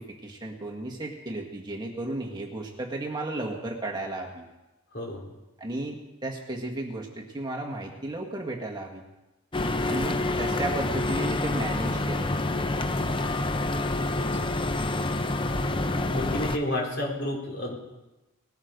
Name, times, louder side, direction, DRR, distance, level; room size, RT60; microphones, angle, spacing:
voice 1, 0.0-4.4 5.6-9.0 9.9-12.3, right 2 dB, 20° right, 0 dB, 1.7 m, -34 dB
voice 2, 4.9-5.2 9.6-10.0 14.4-14.5 16.1-17.7, left 1 dB, 50° left, -1 dB, 4.4 m, -31 dB
sound 1, 9.5-16.6, left 2 dB, 20° left, 0.7 m, -27 dB
19.5 x 13.0 x 5.3 m, 1.0 s
head